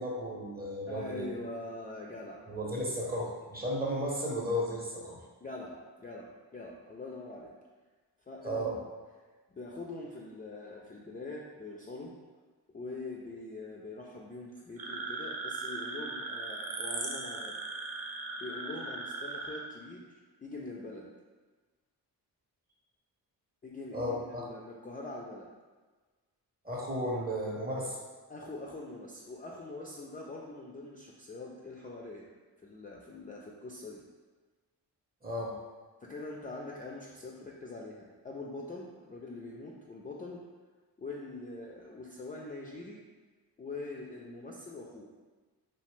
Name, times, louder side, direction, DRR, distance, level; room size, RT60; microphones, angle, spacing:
voice 1, 0.0-1.3 2.5-5.2 8.4-8.7 23.9-24.4 26.6-28.0 35.2-35.6, equal, 25° right, -2 dB, 0.7 m, -34 dB
voice 2, 0.9-2.7 3.0-3.2 5.4-7.5 8.3-8.8 9.5-12.1 12.7-17.6 18.4-21.1 23.6-25.5 28.3-32.2 32.6-34.0 36.0-40.4 41.0-43.0 43.6-45.1, left 2 dB, 25° left, -2 dB, 0.3 m, -43 dB
sound 1, 14.8-19.6, right 3 dB, 60° right, 0.6 m, -38 dB
2.8 x 2.0 x 3.1 m, 1.3 s
cardioid pair, 45°, 40 cm